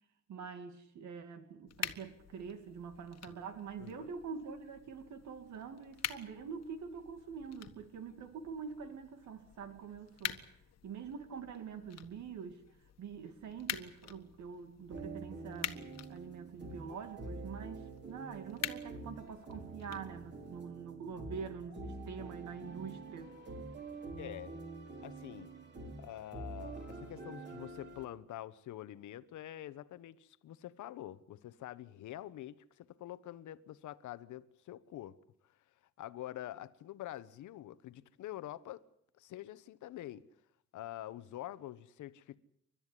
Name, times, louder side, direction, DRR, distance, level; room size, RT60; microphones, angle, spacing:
voice 1, 0.3-10.5 10.8-12.6 13.0-15.8 16.1-23.3, right 6 dB, 75° right, 2.3 m, -45 dB
sound 1, 1.7-20.6, left 10 dB, 60° left, 1.6 m, -47 dB
voice 2, 3.8-4.1 24.2-24.6 25.0-25.5 26.0-35.2 36.0-38.8 39.2-40.3 40.7-42.4, left 13 dB, 85° left, 1.2 m, -46 dB
sound 2, 14.9-28.1, right 3 dB, 35° right, 3.9 m, -47 dB
29.5 x 13.0 x 9.9 m
cardioid pair, 155°, 29 cm